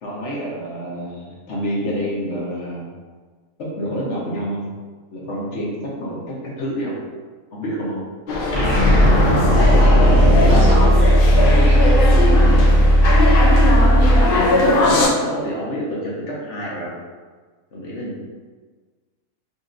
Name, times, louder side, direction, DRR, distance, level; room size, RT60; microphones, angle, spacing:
voice 1, 0.0-2.9 3.6-4.6 5.1-7.0 7.5-8.0 14.8-16.9 17.7-18.2, equal, 55° left, -4 dB, 1.1 m, -28 dB
sound 1, 8.3-15.1, left 2 dB, 80° left, 0.4 m, -20 dB
sound 2, 8.5-11.9, left 1 dB, 35° left, 0.6 m, -21 dB
sound 3, 8.8-14.4, equal, 80° right, 0.5 m, -14 dB
voice 2, 10.1-12.3, right 2 dB, 60° right, -4 dB, 1.2 m, -27 dB
5.2 x 2.6 x 2.5 m, 1.4 s
omnidirectional pair, 1.7 m